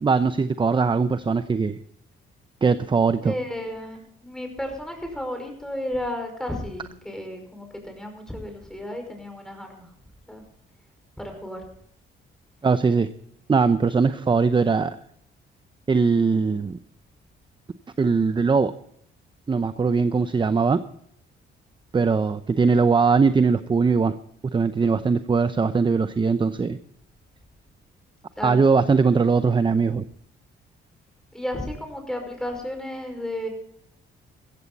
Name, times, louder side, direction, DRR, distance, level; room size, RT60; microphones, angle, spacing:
voice 1, 0.0-1.8 2.6-3.3 12.6-13.1 13.5-15.0 15.9-16.8 18.0-18.7 19.5-20.8 21.9-24.1 24.5-26.8 28.4-30.0, right 4 dB, 25° right, 12 dB, 0.7 m, -20 dB
voice 2, 3.2-9.9 10.3-10.4 11.2-11.6 28.4-28.6 31.3-33.5, left 1 dB, 5° left, 4 dB, 5.4 m, -33 dB
15.5 x 14.5 x 4.1 m, 0.70 s
cardioid pair, 90°, 20 cm